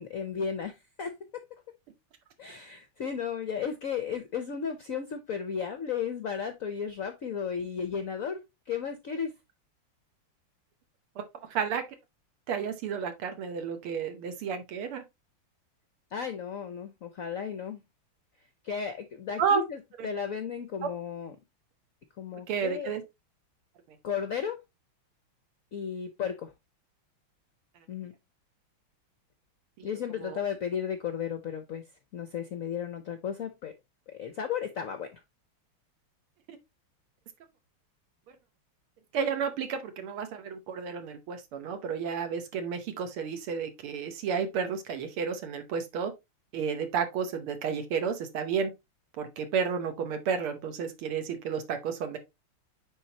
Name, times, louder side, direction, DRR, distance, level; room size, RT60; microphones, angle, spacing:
voice 1, 0.0-1.4 2.4-9.3 16.1-17.8 18.6-19.8 20.0-21.3 22.2-22.9 24.0-24.6 25.7-26.5 27.9-28.1 29.8-31.8 32.1-33.7 34.1-35.2, left 7 dB, 75° left, 0.7 m, -34 dB
voice 2, 11.5-11.8 12.5-15.0 19.4-19.7 20.0-20.1 22.5-23.0 29.8-29.9 30.2-30.4 36.5-36.6 38.3-38.4 39.1-46.1 46.5-48.7 49.2-52.2, right 6 dB, 80° right, 1.9 m, -31 dB
9.6 x 4.0 x 2.8 m
omnidirectional pair, 2.4 m